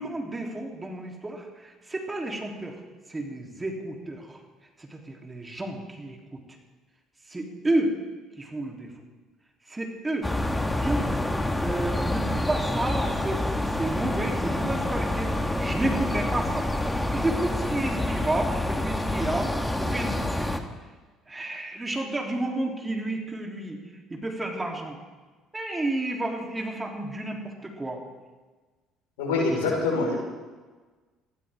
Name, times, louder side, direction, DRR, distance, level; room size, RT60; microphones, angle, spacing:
voice 1, 0.0-2.8 3.1-4.4 4.8-6.4 7.3-8.0 8.4-8.9 9.7-10.3 10.7-11.1 11.6-16.7 17.1-20.5 21.3-23.8 24.1-25.0 25.5-28.0, right 2 dB, 20° right, 1 dB, 3.4 m, -31 dB
sound 1, 10.2-20.6, left 1 dB, 10° left, 1.7 m, -27 dB
voice 2, 29.2-30.2, left 3 dB, 85° left, -1 dB, 5.1 m, -24 dB
21.0 x 15.0 x 3.7 m, 1.3 s
hypercardioid pair, 60°, 0 cm